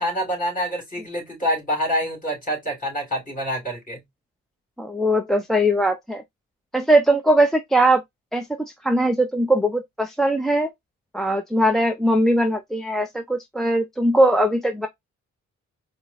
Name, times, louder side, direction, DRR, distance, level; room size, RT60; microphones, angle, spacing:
voice 1, 0.0-4.0, equal, 25° left, 2.8 m, -26 dB
voice 2, 4.8-6.2 6.7-8.0 8.3-8.5 8.8-10.7 11.1-14.9, right 1 dB, ahead, 0.5 m, -20 dB
4.5 x 2.0 x 4.0 m
cardioid pair, 90°, 30 cm